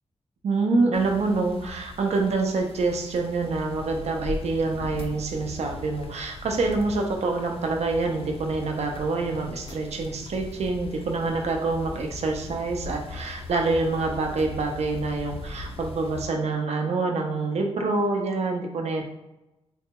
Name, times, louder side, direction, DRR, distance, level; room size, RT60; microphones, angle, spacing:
voice 1, 0.4-19.0, right 3 dB, 80° right, 2 dB, 0.5 m, -26 dB
sound 1, 0.9-16.3, left 2 dB, 60° left, 0.4 m, -39 dB
3.9 x 2.2 x 2.8 m, 0.96 s
wide cardioid pair, 115°, 11 cm